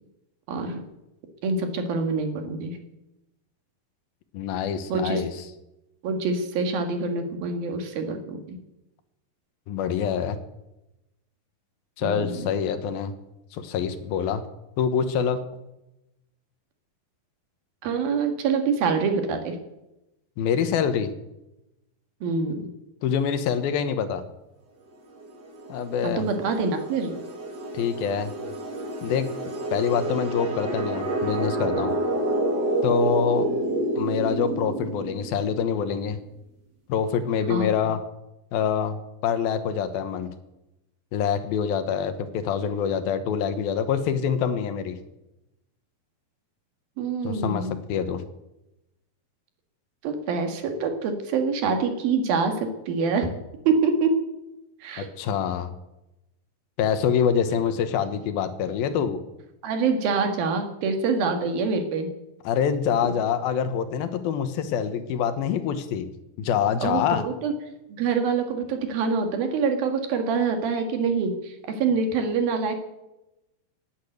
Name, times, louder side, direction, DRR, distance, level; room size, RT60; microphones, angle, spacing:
voice 1, 0.5-0.8 1.4-2.8 4.9-5.2 6.0-8.6 12.0-12.5 17.8-19.6 22.2-22.7 26.0-27.2 37.5-37.7 47.0-47.8 50.0-53.3 53.7-54.1 54.8-55.1 59.6-62.1 63.0-63.1 66.8-67.5 67.9-72.8, right 4 dB, 75° right, 5 dB, 3.6 m, -25 dB
voice 2, 4.3-5.3 9.7-10.4 12.0-13.1 13.5-14.4 14.8-15.4 20.4-21.1 23.0-24.2 25.7-26.2 27.7-28.3 29.0-29.3 29.7-31.9 32.8-33.5 34.0-36.2 36.9-38.0 38.5-39.0 39.2-40.3 41.1-45.0 47.2-48.2 55.0-55.7 56.8-59.2 62.5-66.1 66.4-67.2, left 7 dB, 80° left, 10 dB, 3.0 m, -25 dB
sound 1, 25.2-35.7, right 1 dB, 35° right, 2.0 m, -29 dB
18.5 x 8.8 x 7.9 m, 0.94 s
omnidirectional pair, 4.3 m